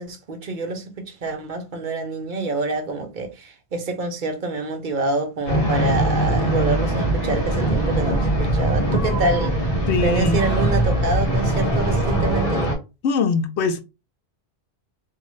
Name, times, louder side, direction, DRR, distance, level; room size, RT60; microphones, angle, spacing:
voice 1, 0.0-9.6 10.0-12.7, right 3 dB, 55° right, 0.8 m, -26 dB
sound 1, 5.5-12.8, right 1 dB, 55° left, 1.3 m, -22 dB
sound 2, 7.3-12.3, equal, ahead, 0.7 m, -31 dB
voice 2, 9.9-10.4 13.0-13.8, left 5 dB, 80° left, 0.9 m, -22 dB
2.7 x 2.4 x 3.1 m
omnidirectional pair, 1.1 m